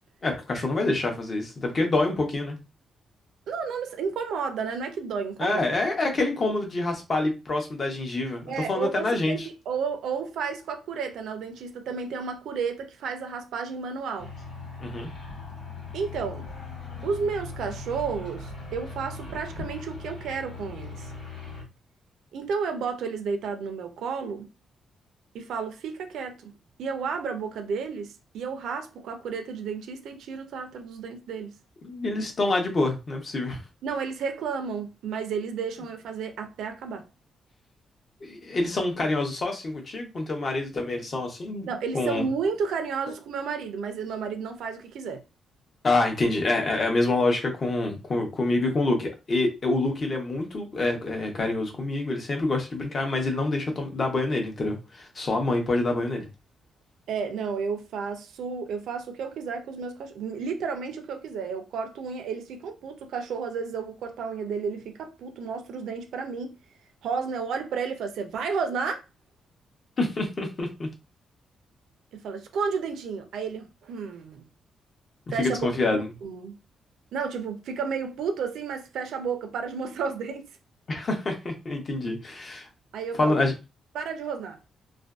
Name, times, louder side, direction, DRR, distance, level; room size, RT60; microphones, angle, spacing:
voice 1, 0.2-2.6 5.4-9.4 14.8-15.1 31.8-33.6 38.2-41.7 41.9-42.3 45.8-56.3 70.0-70.9 75.4-76.1 80.9-82.7 83.2-83.5, left 2 dB, 35° left, 0.7 m, -26 dB
voice 2, 3.5-5.6 8.5-14.3 15.9-16.5 17.0-21.1 22.3-24.5 25.3-26.5 26.8-31.6 33.8-37.1 41.7-45.2 57.1-66.6 67.0-69.0 72.1-74.5 75.3-76.6 77.1-80.5 82.9-83.4 83.9-84.6, right 5 dB, 80° right, 0.5 m, -32 dB
sound 1, 14.2-21.6, left 3 dB, 75° left, 1.1 m, -39 dB
2.5 x 2.2 x 2.3 m
cardioid pair, 155°, 0 cm